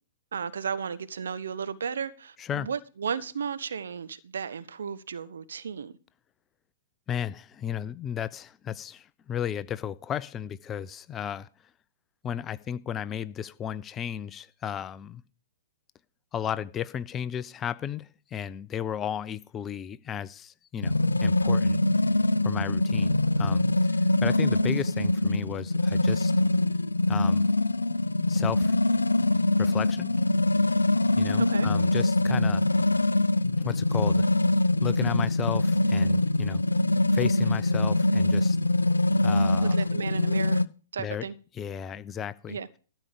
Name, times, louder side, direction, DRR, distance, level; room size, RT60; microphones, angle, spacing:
voice 1, 0.3-5.9 31.4-31.7 39.6-40.6 40.9-41.4 42.5-42.7, right 6 dB, 65° right, 1.0 m, -34 dB
voice 2, 7.1-11.5 12.2-15.2 16.3-21.8 22.4-26.3 27.1-27.4 28.3-28.7 29.6-30.1 31.2-32.7 33.6-34.3 34.8-36.6 37.1-38.6 39.2-39.8 41.0-41.3 41.6-42.6, left 9 dB, 20° left, 0.6 m, -34 dB
sound 1, 20.8-40.7, left 2 dB, 85° left, 0.5 m, -24 dB
13.0 x 5.3 x 8.7 m
figure-of-eight pair, 115°, 0 cm